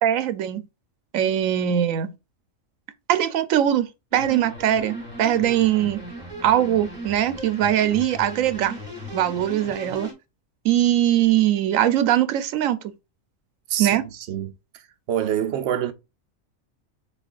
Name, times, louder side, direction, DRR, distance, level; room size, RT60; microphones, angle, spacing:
voice 1, 0.0-0.6 1.1-2.1 3.1-3.9 4.1-6.0 6.4-8.7 9.1-10.1 10.6-12.8 13.8-14.0, right 11 dB, 85° right, 1.0 m, -21 dB
sound 1, 4.1-10.1, equal, 35° right, 1.8 m, -37 dB
voice 2, 13.7-15.9, right 10 dB, 60° right, 0.9 m, -27 dB
6.8 x 2.4 x 2.5 m
omnidirectional pair, 1.4 m